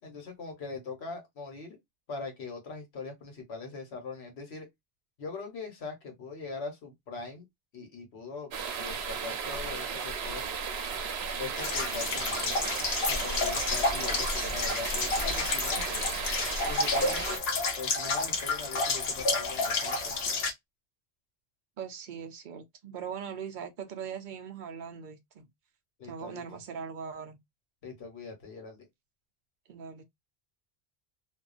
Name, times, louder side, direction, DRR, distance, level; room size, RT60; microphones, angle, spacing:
voice 1, 0.0-1.8 2.1-4.7 5.2-7.4 7.7-8.5 8.8-10.5 11.4-12.5 13.1-16.0 16.6-17.4 17.8-20.4 26.0-26.4 27.8-28.9, left 4 dB, 90° left, 1.2 m, -41 dB
sound 1, 8.5-17.4, right 5 dB, 85° right, 0.9 m, -34 dB
sound 2, 11.6-20.5, left 3 dB, 75° left, 0.9 m, -30 dB
voice 2, 21.8-25.5 26.0-27.4 29.7-30.0, right 7 dB, 60° right, 0.6 m, -40 dB
2.4 x 2.3 x 2.4 m
omnidirectional pair, 1.1 m